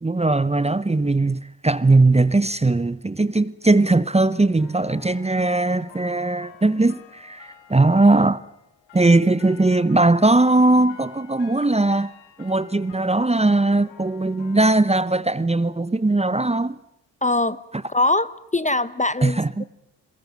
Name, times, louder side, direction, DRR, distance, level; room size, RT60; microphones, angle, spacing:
voice 1, 0.0-8.4 8.9-12.1 12.4-16.8 19.2-19.6, right 2 dB, 15° right, 0.9 m, -19 dB
sound 1, 4.6-14.7, left 10 dB, 85° left, 1.9 m, -50 dB
voice 2, 17.2-17.6 17.9-19.6, left 2 dB, 15° left, 0.9 m, -22 dB
22.5 x 20.5 x 9.4 m
supercardioid pair, 50°, 45 cm